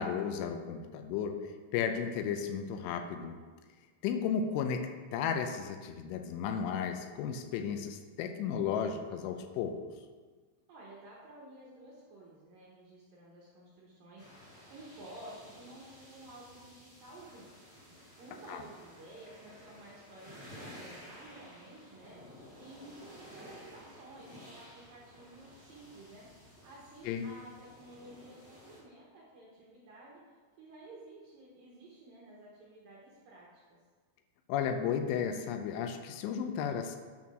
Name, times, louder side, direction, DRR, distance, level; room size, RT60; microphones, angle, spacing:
voice 1, 0.0-1.4 1.7-3.4 4.0-9.8 18.5-18.6 27.1-27.2 34.5-37.0, left 7 dB, 80° left, 6 dB, 2.9 m, -34 dB
voice 2, 10.7-30.2 30.6-33.8, right 1 dB, 75° right, -5 dB, 2.1 m, -53 dB
sound 1, 14.2-28.8, equal, 40° left, 0.7 m, -54 dB
9.4 x 4.4 x 6.0 m, 1.5 s
omnidirectional pair, 5.7 m